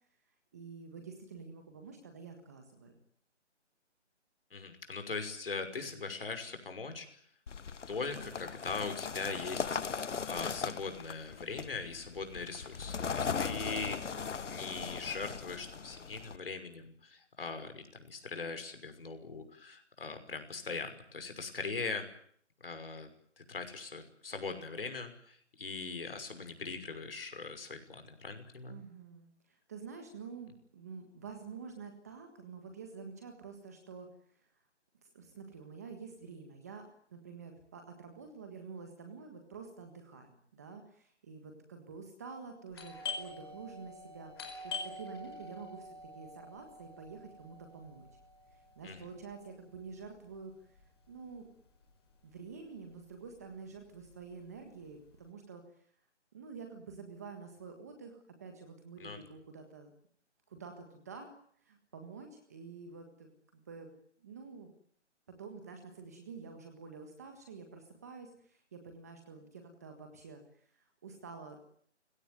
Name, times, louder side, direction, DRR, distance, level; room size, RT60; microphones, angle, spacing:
voice 1, 0.5-2.9 28.7-34.5 35.0-48.1 48.5-51.5 52.2-55.9 56.3-59.9 60.5-61.3 61.6-63.9 64.2-64.7 65.4-71.6, right 5 dB, 15° right, 5 dB, 1.6 m, -49 dB
voice 2, 4.5-7.2 7.9-22.1 22.6-23.1 23.5-28.8 48.8-49.0 59.0-59.2, left 4 dB, 50° left, 8 dB, 6.0 m, -41 dB
sound 1, 7.5-16.4, left 6 dB, 80° left, 1.1 m, -39 dB
Doorbell, 42.7-52.1 52.4-52.5 53.1-53.4 53.8-55.1, left 4 dB, 20° left, 4.8 m, -46 dB
29.5 x 17.5 x 9.3 m, 0.63 s
hypercardioid pair, 175°, 36 cm